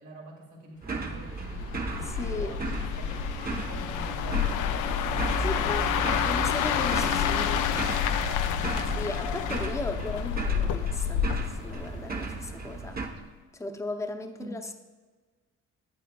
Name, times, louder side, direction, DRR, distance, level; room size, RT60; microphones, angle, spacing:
voice 1, 0.0-4.9 5.5-8.6 14.4-14.5, right 1 dB, 80° right, -2 dB, 2.2 m, -46 dB
sound 1, 0.8-13.1, right 3 dB, 30° right, 1.0 m, -35 dB
sound 2, 1.4-12.5 12.9-13.2, left 8 dB, 90° left, 0.5 m, -29 dB
voice 2, 2.1-2.6 5.4-5.9 6.3-7.7 8.9-13.0 13.5-14.7, left 2 dB, 10° left, 6 dB, 0.7 m, -36 dB
9.4 x 9.1 x 2.3 m, 1.4 s
cardioid pair, 90°, 30 cm